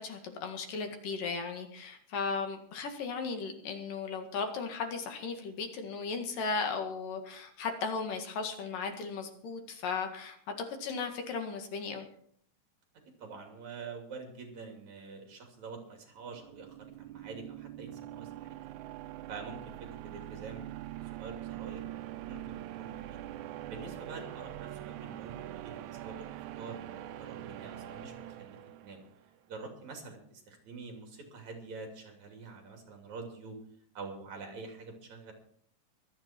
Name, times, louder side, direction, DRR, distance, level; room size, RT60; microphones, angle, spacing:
voice 1, 0.0-12.1, left 4 dB, 75° left, 5 dB, 3.5 m, -36 dB
voice 2, 13.2-18.5 19.3-21.9 22.3-23.2 23.7-26.9 27.2-29.0 29.5-33.6 33.9-35.3, right 4 dB, 55° right, 3 dB, 3.9 m, -46 dB
sound 1, 16.2-29.2, right 13 dB, 75° right, 1.8 m, -43 dB
24.0 x 9.1 x 4.4 m, 0.62 s
omnidirectional pair, 3.9 m